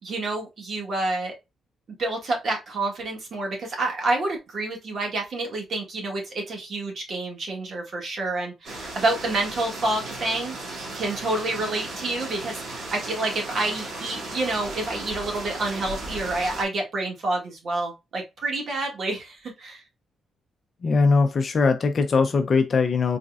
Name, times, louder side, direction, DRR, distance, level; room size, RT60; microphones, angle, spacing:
voice 1, 0.0-1.3 2.0-10.6 10.9-19.8, right 2 dB, 40° right, 1.7 m, -28 dB
sound 1, 8.6-16.6, right 2 dB, 60° right, 1.9 m, -36 dB
voice 2, 20.8-23.2, left 4 dB, 35° left, 0.6 m, -21 dB
4.2 x 3.7 x 2.4 m
cardioid pair, 165°, 0 cm